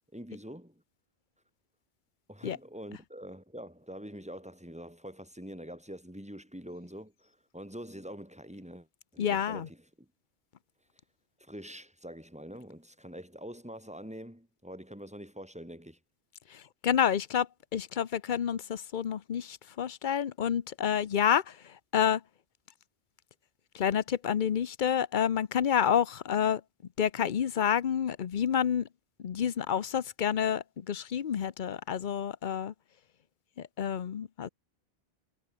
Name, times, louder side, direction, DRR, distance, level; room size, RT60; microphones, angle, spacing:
voice 1, 0.1-0.8 2.3-8.9 9.1-10.1 11.4-16.0, equal, 5° right, 3.9 m, -45 dB
voice 2, 9.2-9.7 16.5-22.2 23.7-26.6 27.0-28.9 29.2-32.7 33.6-34.5, left 8 dB, 50° left, 0.8 m, -29 dB
omnidirectional pair, 1.1 m